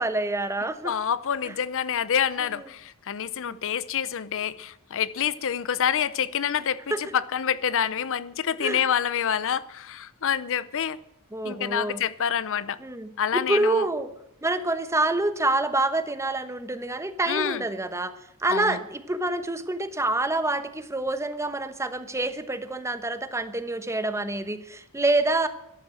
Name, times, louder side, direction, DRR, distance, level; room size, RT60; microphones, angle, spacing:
voice 1, 0.0-0.9 1.4-1.5 3.5-3.6 6.9-7.0 8.6-8.8 11.3-12.0 12.8-14.1 14.4-18.1 18.4-25.5, right 2 dB, 15° right, 11 dB, 1.1 m, -27 dB
voice 2, 0.8-11.0 11.4-12.8 13.2-13.9 17.3-17.6 18.5-18.8, left 8 dB, 60° left, 17 dB, 0.6 m, -27 dB
13.5 x 11.5 x 7.6 m, 0.80 s
head